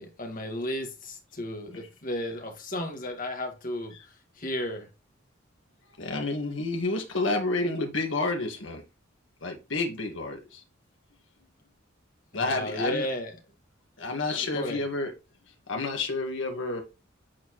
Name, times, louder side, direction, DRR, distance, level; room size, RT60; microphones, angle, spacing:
voice 1, 0.0-4.9 12.3-13.3 14.3-14.8, left 1 dB, 45° left, 1.9 m, -34 dB
voice 2, 6.0-8.8 9.4-10.6 12.3-13.1 14.0-15.1 15.7-16.8, left 3 dB, 70° left, 1.9 m, -29 dB
8.4 x 4.5 x 3.2 m
head